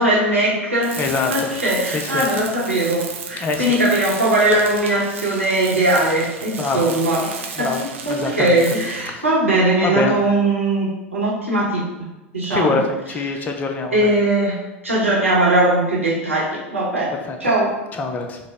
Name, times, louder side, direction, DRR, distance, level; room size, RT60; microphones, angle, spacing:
voice 1, 0.0-7.7 8.0-11.8 12.3-12.8 13.3-13.4 13.9-14.5 14.8-17.1 17.4-17.7, right 1 dB, 85° right, -6 dB, 1.1 m, -19 dB
Tools, 0.8-9.2, right 5 dB, 70° right, 0.4 m, -34 dB
voice 2, 1.0-1.5 1.9-2.3 3.4-3.7 6.6-6.9 7.5-8.6 9.1-9.2 9.8-10.2 12.5-14.1 17.1-17.4 17.9-18.4, left 4 dB, 25° left, 4 dB, 0.5 m, -24 dB
3.9 x 2.1 x 3.4 m, 1.0 s
figure-of-eight pair, 85°, 7 cm